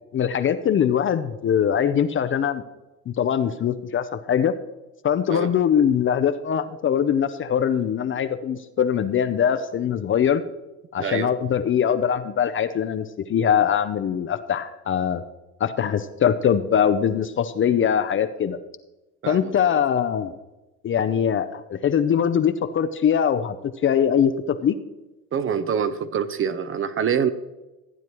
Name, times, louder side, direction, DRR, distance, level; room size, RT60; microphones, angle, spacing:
voice 1, 0.0-2.6 3.1-4.5 5.0-10.4 10.9-15.2 15.6-18.6 19.3-20.4 20.8-23.6 23.8-24.8, left 8 dB, 30° left, 10 dB, 0.6 m, -22 dB
voice 2, 11.0-11.3 19.2-19.8 25.3-27.3, right 7 dB, 30° right, 12 dB, 0.6 m, -26 dB
15.0 x 9.1 x 3.0 m, 1.0 s
hypercardioid pair, 80°, 43 cm